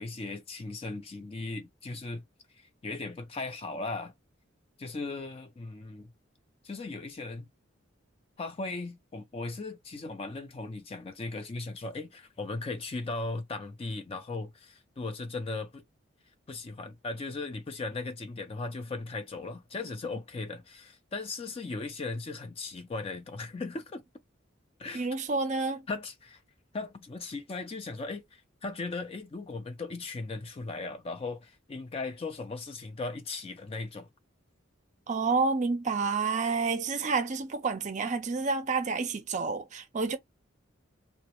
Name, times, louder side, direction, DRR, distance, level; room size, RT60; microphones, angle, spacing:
voice 1, 0.0-2.2 2.6-4.1 4.8-6.1 6.6-7.5 8.4-15.8 16.5-24.0 24.8-25.1 25.9-26.4 26.7-34.1, left 3 dB, 30° left, 0.4 m, -37 dB
voice 2, 24.9-25.9 35.1-40.2, right 4 dB, 40° right, 0.5 m, -29 dB
2.1 x 2.0 x 2.8 m
head